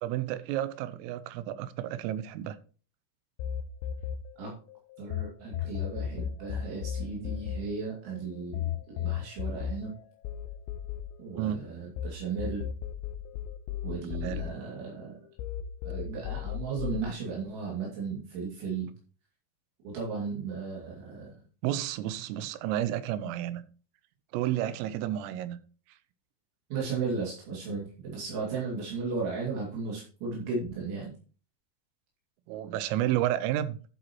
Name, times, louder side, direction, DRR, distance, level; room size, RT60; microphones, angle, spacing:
voice 1, 0.0-2.6 11.4-11.6 14.2-14.5 21.6-23.6 24.3-25.6 32.5-33.8, right 12 dB, 85° right, 3.4 m, -31 dB
sound 1, 3.4-5.2 5.5-12.1 12.4-15.1 15.4-17.0, left 10 dB, 85° left, 2.6 m, -35 dB
voice 2, 5.0-9.9 11.2-12.7 13.8-15.2 15.8-18.9 19.8-21.3 26.7-31.1, right 4 dB, 65° right, 4.6 m, -35 dB
12.0 x 7.8 x 3.0 m
omnidirectional pair, 5.9 m